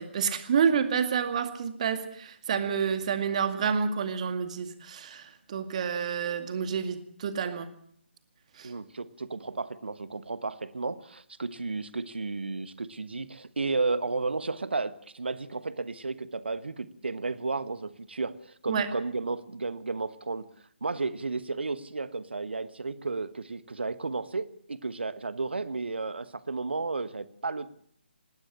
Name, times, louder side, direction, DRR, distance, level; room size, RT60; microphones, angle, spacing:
voice 1, 0.0-7.7 8.6-8.7 18.7-18.9, right 7 dB, 35° right, 9 dB, 2.1 m, -29 dB
voice 2, 8.6-20.4 20.8-27.7, right 3 dB, 65° right, 15 dB, 1.3 m, -33 dB
19.5 x 16.5 x 8.7 m, 0.62 s
figure-of-eight pair, 145°, 6 cm